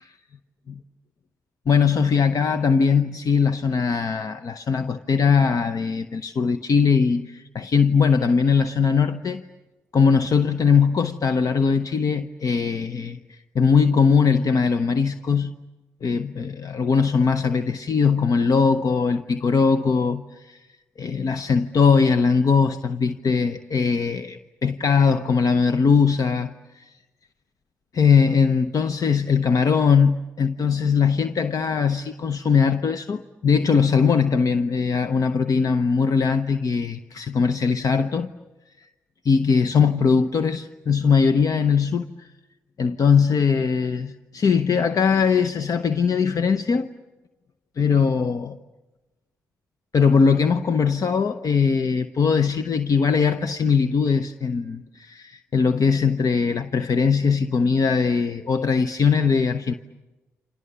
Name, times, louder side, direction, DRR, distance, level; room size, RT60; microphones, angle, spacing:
voice 1, 1.7-9.4 9.9-15.5 16.0-20.7 21.0-26.9 27.9-38.3 39.2-42.3 42.8-46.9 47.8-48.6 49.9-59.7, left 5 dB, 50° left, 0.9 m, -20 dB
29.5 x 26.5 x 6.9 m
hypercardioid pair, 45°, 8 cm